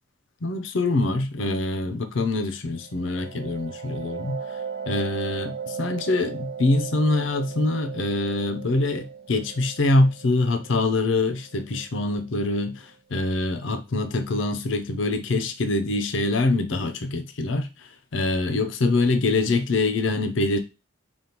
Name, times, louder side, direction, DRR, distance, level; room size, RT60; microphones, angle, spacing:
voice 1, 0.4-4.4 4.9-12.7 13.1-17.7 18.1-20.6, left 2 dB, 75° left, 0.6 m, -24 dB
sound 1, 2.7-12.2, right 6 dB, 60° right, 0.5 m, -37 dB
5.1 x 2.4 x 2.9 m
head